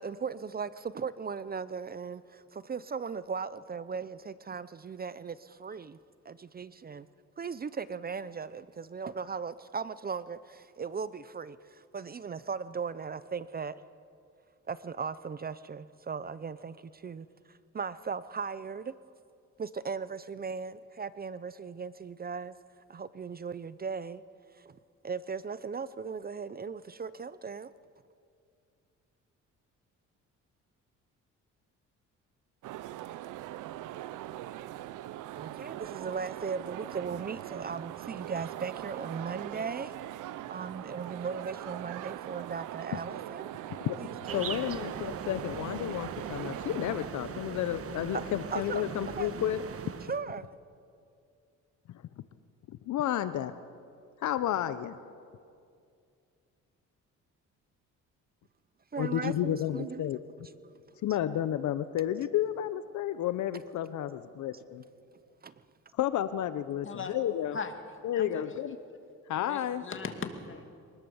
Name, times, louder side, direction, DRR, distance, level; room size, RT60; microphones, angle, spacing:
voice 1, 0.0-6.0 6.2-7.1 7.4-13.8 14.7-18.9 19.6-22.6 22.9-24.2 24.5-24.8 25.0-27.7 35.3-40.0 40.5-43.5 44.0-44.5 48.1-48.2 48.5-48.9 49.2-49.3 50.0-50.5 58.9-60.0 65.4-65.5, right 5 dB, 30° right, 16 dB, 0.6 m, -38 dB
sound 1, 32.6-47.1, right 14 dB, 85° right, 0.7 m, -41 dB
voice 2, 44.3-49.6 52.7-53.5 54.2-55.0 59.0-60.2 61.0-64.8 66.0-67.6 68.0-68.8 69.3-69.8, left 11 dB, 75° left, 13 dB, 0.8 m, -31 dB
sound 2, 44.3-50.2, right 7 dB, 50° right, 1.3 m, -40 dB
voice 3, 66.8-67.1 67.5-67.7 68.2-68.4 69.5-70.7, left 5 dB, 40° left, 6 dB, 2.4 m, -38 dB
23.0 x 20.0 x 7.1 m, 2.4 s
cardioid pair, 90°, 30 cm